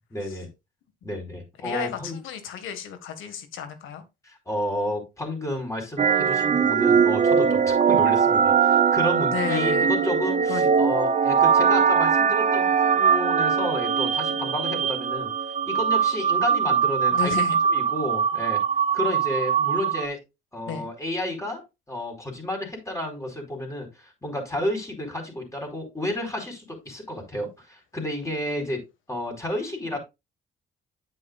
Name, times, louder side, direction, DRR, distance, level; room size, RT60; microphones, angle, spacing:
voice 1, 0.1-0.5 1.0-2.2 4.2-15.3 15.7-17.4 17.7-18.6 18.9-20.2 20.5-21.6 21.9-30.0, left 1 dB, 15° left, 4.6 m, -31 dB
voice 2, 1.6-4.0 9.3-9.9 10.5-10.9 17.1-17.6 20.7-20.9 29.9-30.0, left 8 dB, 85° left, 1.8 m, -33 dB
sound 1, 6.0-20.1, right 7 dB, 40° right, 0.9 m, -21 dB
9.4 x 7.7 x 2.4 m
cardioid pair, 90°, 20 cm